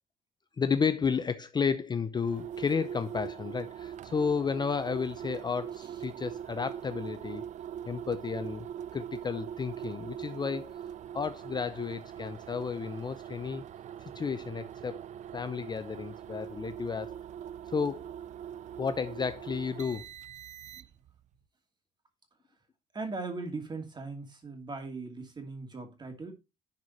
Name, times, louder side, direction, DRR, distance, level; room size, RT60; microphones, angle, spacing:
voice 1, 0.6-7.4 7.9-8.7 8.9-10.7 11.1-13.6 14.0-15.0 15.3-17.2 17.7-18.1 18.8-20.0, left 6 dB, 25° left, 0.6 m, -32 dB
sound 1, 2.2-21.2, right 9 dB, 45° right, 0.4 m, -42 dB
voice 2, 22.9-26.3, right 3 dB, 25° right, 2.5 m, -39 dB
11.0 x 4.7 x 4.0 m
cardioid pair, 110°, 17 cm